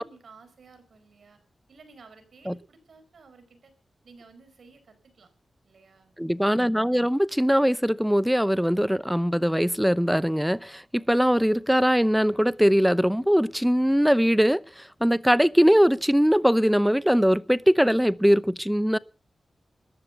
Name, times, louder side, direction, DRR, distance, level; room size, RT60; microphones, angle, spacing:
voice 1, 0.0-1.4 1.7-3.7 4.0-5.3 5.6-6.1, right 4 dB, 80° right, 4.9 m, -53 dB
voice 2, 6.2-19.0, equal, 5° right, 0.8 m, -21 dB
14.5 x 10.5 x 8.1 m
cardioid pair, 50°, 0 cm